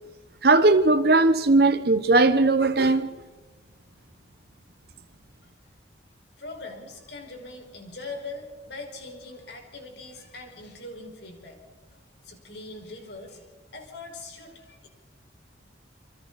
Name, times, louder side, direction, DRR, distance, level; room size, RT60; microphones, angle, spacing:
voice 1, 0.4-3.1, right 2 dB, 55° right, 0.9 m, -19 dB
voice 2, 6.4-11.6 11.9-14.9, left 2 dB, 65° left, 5.4 m, -41 dB
29.0 x 25.0 x 4.2 m
head